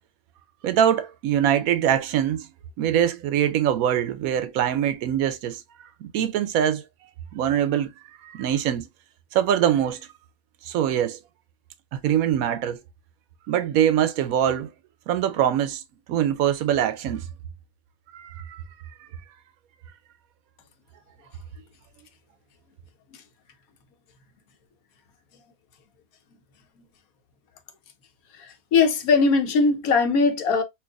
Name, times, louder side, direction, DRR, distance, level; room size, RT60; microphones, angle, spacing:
voice 1, 0.6-2.5 2.8-5.6 6.0-6.8 7.3-7.9 8.2-8.9 9.3-10.1 10.6-11.2 11.9-12.8 13.5-14.7 15.1-15.8 16.1-17.3 18.1-18.6, right 10 dB, 85° right, 1.0 m, -23 dB
voice 2, 28.3-30.6, left 4 dB, 90° left, 1.3 m, -20 dB
4.5 x 2.5 x 2.3 m
omnidirectional pair, 1.5 m